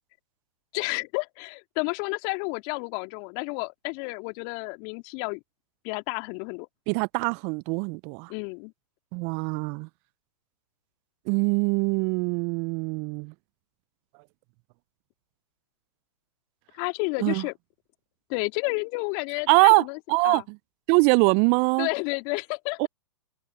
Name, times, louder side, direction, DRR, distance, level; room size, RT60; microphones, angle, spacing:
voice 1, 0.7-5.4 5.8-6.7 8.3-8.7 16.7-17.5 18.3-20.0 20.2-20.4 21.8-22.9, left 33 dB, 40° left, 2.1 m, -31 dB
voice 2, 6.9-8.3 9.1-9.9 11.3-13.3 17.2-17.4 19.5-19.8 20.1-20.6 20.9-21.9 22.8-22.9, right 33 dB, 35° right, 0.7 m, -23 dB
figure-of-eight pair, 110°, 16 cm